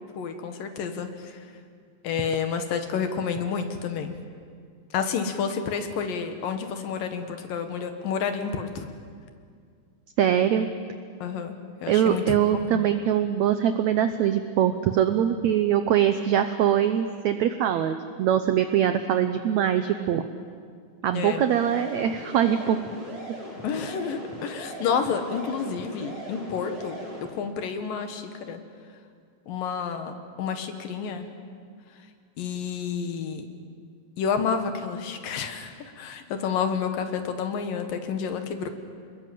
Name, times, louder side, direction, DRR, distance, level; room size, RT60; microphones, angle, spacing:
voice 1, 0.2-1.4 2.0-4.1 4.9-8.9 11.2-11.6 11.8-12.4 12.7-12.8 21.1-21.4 23.6-28.6 29.5-30.1 30.4-31.3 32.4-33.4 34.2-38.7, left 6 dB, 70° left, 7 dB, 3.1 m, -30 dB
voice 2, 10.2-10.7 11.9-20.2 21.0-22.9, right 9 dB, 80° right, 9 dB, 1.6 m, -23 dB
sound 1, 21.4-27.2, equal, 25° right, 6.5 m, -39 dB
27.0 x 21.0 x 7.7 m, 2.1 s
omnidirectional pair, 4.2 m